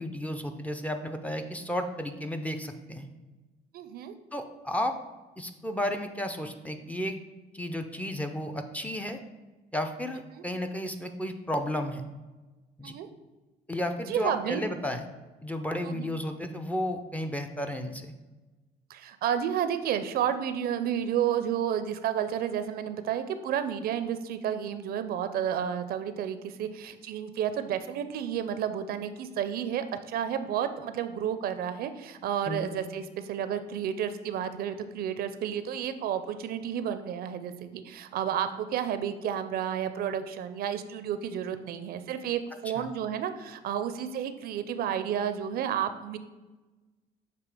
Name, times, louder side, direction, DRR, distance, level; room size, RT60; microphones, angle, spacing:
voice 1, 0.0-3.1 4.3-4.9 5.4-7.2 7.5-9.2 9.7-12.0 12.8-12.9 13.7-15.0 15.4-18.1 32.5-32.7 42.8-42.9, left 1 dB, 10° left, 6 dB, 0.5 m, -33 dB
voice 2, 3.7-4.1 10.3-10.4 12.8-13.1 14.1-14.6 15.8-16.1 18.9-46.2, right 9 dB, 65° right, 10 dB, 0.5 m, -31 dB
6.9 x 2.9 x 4.8 m, 1.2 s
cardioid pair, 110°, 17 cm